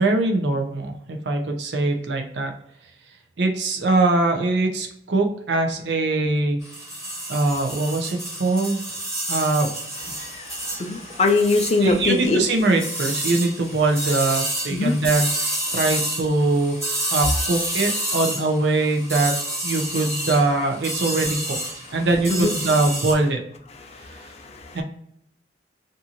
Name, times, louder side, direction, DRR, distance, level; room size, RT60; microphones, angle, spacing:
voice 1, 0.0-2.5 3.4-6.6 7.3-8.8 9.3-9.7 11.8-15.3 15.7-16.8 17.1-19.3 19.6-21.6 21.9-23.4 24.7-24.8, right 2 dB, 65° right, 4 dB, 0.6 m, -22 dB
sound 1, 6.6-23.1, right 1 dB, 15° right, 0.9 m, -29 dB
voice 2, 10.1-12.4 14.7-14.9 22.3-22.5 23.8-24.8, left 3 dB, 35° left, 3 dB, 0.4 m, -23 dB
2.6 x 2.5 x 2.7 m, 0.72 s
head